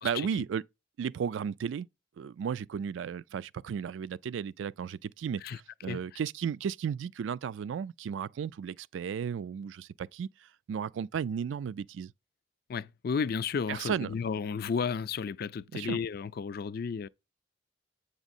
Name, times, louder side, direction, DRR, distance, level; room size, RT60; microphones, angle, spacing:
voice 1, 0.0-0.6 1.0-1.9 2.2-5.4 5.8-10.3 10.7-12.1 13.7-14.1 15.7-16.0, right 7 dB, 85° right, 0.3 m, -34 dB
voice 2, 12.7-17.1, left 6 dB, 55° left, 0.4 m, -33 dB
8.0 x 5.0 x 2.6 m
head